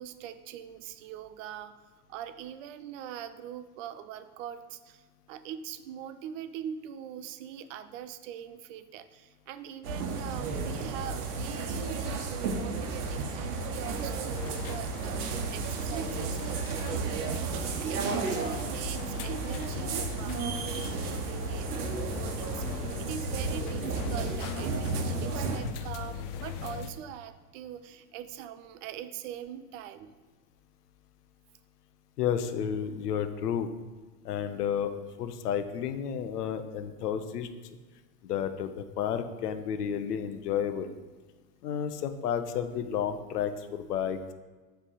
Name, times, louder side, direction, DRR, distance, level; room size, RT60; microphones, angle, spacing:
voice 1, 0.0-1.8 2.1-21.7 22.1-30.1, right 9 dB, 55° right, 12 dB, 0.6 m, -42 dB
sound 1, 9.8-25.6, right 4 dB, 70° right, 1.0 m, -33 dB
sound 2, 14.3-26.9, left 6 dB, 40° left, 0.7 m, -40 dB
Crumpling crinkling, 15.6-21.2, left 2 dB, 25° left, 1.6 m, -55 dB
voice 2, 32.2-33.7 34.2-34.9 35.2-37.5 38.2-40.9 41.6-44.3, left 8 dB, 75° left, 9 dB, 0.8 m, -31 dB
7.5 x 3.4 x 4.7 m, 1.3 s
hypercardioid pair, 85°, 47 cm